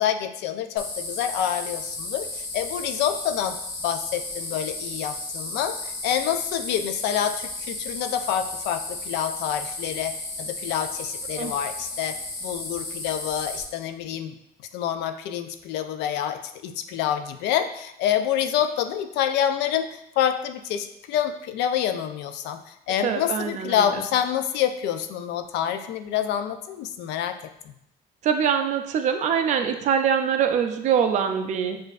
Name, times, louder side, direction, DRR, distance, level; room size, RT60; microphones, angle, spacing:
voice 1, 0.0-3.6 3.8-14.3 14.7-27.4, left 10 dB, 85° left, 9 dB, 0.4 m, -27 dB
sound 1, 0.8-13.6, left 2 dB, 55° left, 0.8 m, -34 dB
voice 2, 23.0-24.0 28.2-31.8, right 7 dB, 45° right, 7 dB, 0.4 m, -24 dB
6.5 x 2.5 x 2.4 m, 0.78 s
cardioid pair, 170°, 17 cm